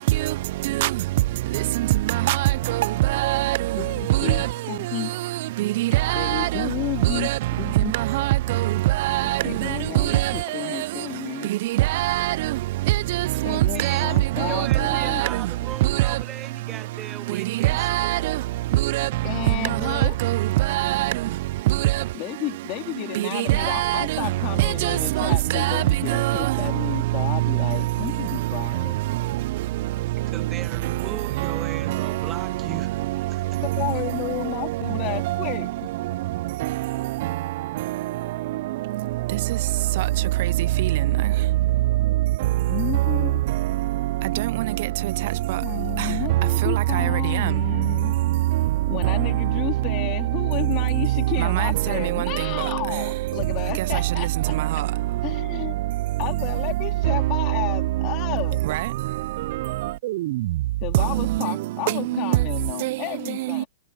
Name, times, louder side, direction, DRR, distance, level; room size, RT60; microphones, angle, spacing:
voice 1, 3.2-3.6 5.8-5.9 6.2-6.5 9.0-9.4 12.0-12.3 13.8-14.0 14.8-15.3 17.8-18.2 20.7-21.1 23.6-24.0 24.8-24.9 25.5-25.7 26.2-26.3, right 17 dB, 50° right, 0.5 m, -23 dB
voice 2, 3.8-5.1 6.1-7.3 7.6-7.9 9.2-11.5 13.4-15.2 19.2-20.2 22.1-29.0 33.8-35.9 42.7-43.4 45.6-48.1 48.9-54.5 55.2-55.8 56.2-58.7 60.8-63.7, left 22 dB, 35° left, 3.8 m, -32 dB
voice 3, 7.0-7.4 13.3-17.9 30.3-33.4, right 9 dB, 25° right, 1.0 m, -38 dB
hypercardioid pair, 120°, 0 cm